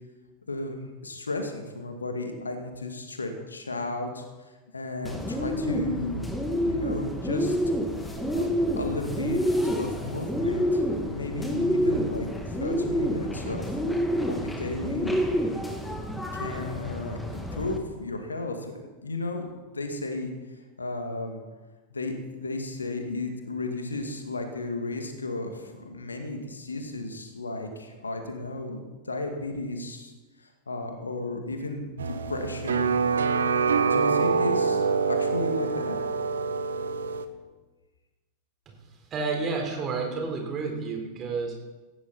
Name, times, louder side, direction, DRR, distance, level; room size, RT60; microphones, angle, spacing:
voice 1, 0.5-4.3 4.7-6.3 6.7-7.6 8.3-8.5 8.8-13.7 14.3-15.2 16.3-17.2 17.5-20.3 20.8-21.4 21.9-30.1 30.4-32.9 33.8-35.9, left 2 dB, 75° left, 5 dB, 2.2 m, -34 dB
Bird, 5.0-17.8, equal, 5° left, 2.2 m, -28 dB
sound 1, 32.0-37.3, right 5 dB, 70° right, 1.0 m, -25 dB
voice 2, 39.1-41.6, right 4 dB, 30° right, 1 dB, 4.3 m, -30 dB
18.0 x 15.5 x 4.3 m, 1.2 s
figure-of-eight pair, 90°, 0 cm